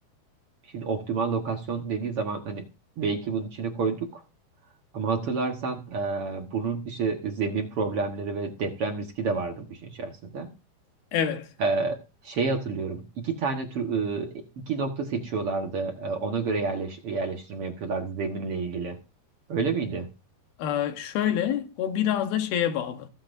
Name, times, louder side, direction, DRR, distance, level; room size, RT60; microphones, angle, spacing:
voice 1, 0.7-2.6 3.0-4.2 4.9-10.5 11.6-14.3 14.6-19.0 19.5-20.1, right 4 dB, 60° right, 1.5 m, -29 dB
voice 2, 11.1-11.5 20.6-23.1, left 10 dB, 70° left, 2.9 m, -27 dB
25.5 x 8.7 x 2.7 m
omnidirectional pair, 4.8 m